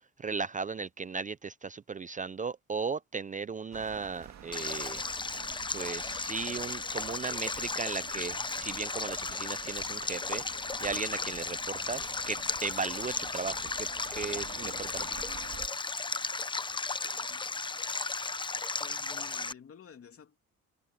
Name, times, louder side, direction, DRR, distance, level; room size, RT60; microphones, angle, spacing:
voice 1, 0.2-5.0 5.7-10.4 10.8-15.2, right 5 dB, 25° right, 0.5 m, -36 dB
sound 1, 3.7-15.7, right 9 dB, 60° right, 2.2 m, -49 dB
Stream, 4.5-19.5, left 3 dB, 15° left, 0.7 m, -35 dB
voice 2, 17.1-17.4 18.8-20.5, left 7 dB, 50° left, 2.8 m, -52 dB
cardioid pair, 90°, 30 cm